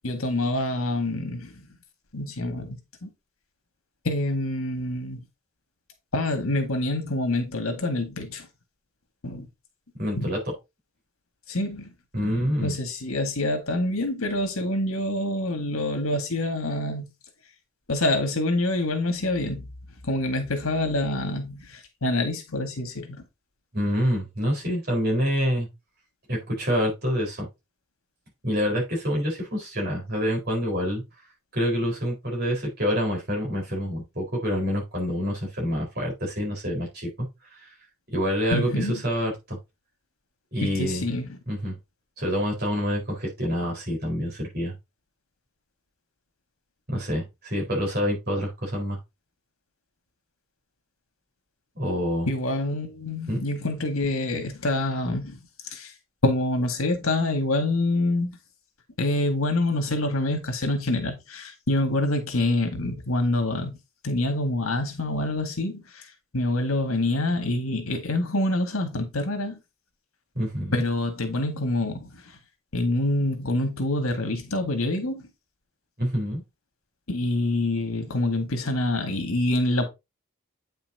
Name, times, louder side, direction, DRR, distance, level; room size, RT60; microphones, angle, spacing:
voice 1, 0.0-1.5 2.1-3.1 4.0-5.2 6.1-8.5 9.2-9.5 10.2-10.3 11.5-11.9 12.2-17.1 17.9-19.7 20.0-23.2 38.5-39.0 40.6-41.4 52.3-55.4 55.7-55.9 56.2-58.4 59.0-63.8 64.0-66.1 66.3-69.6 70.7-72.2 72.7-75.2 77.1-79.8, left 2 dB, 80° left, 1.9 m, -26 dB
voice 2, 10.0-10.5 12.1-12.8 23.7-25.7 26.3-27.5 28.4-31.0 31.5-37.3 37.6-37.7 38.1-39.6 40.5-41.0 41.5-41.8 42.2-44.7 46.9-49.0 51.7-52.3 53.3-53.4 70.3-70.8 76.0-76.4, equal, 45° right, 4.3 m, -27 dB
8.7 x 5.6 x 2.8 m
head